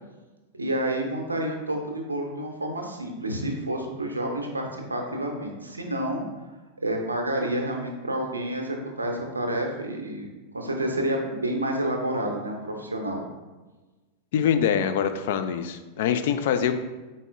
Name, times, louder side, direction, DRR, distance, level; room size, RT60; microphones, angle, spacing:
voice 1, 0.5-6.2 6.8-13.2, right 1 dB, 80° right, 2 dB, 0.6 m, -29 dB
voice 2, 14.3-16.7, left 8 dB, 55° left, 8 dB, 0.3 m, -24 dB
4.2 x 4.0 x 2.4 m, 1.2 s
figure-of-eight pair, 90°, 0 cm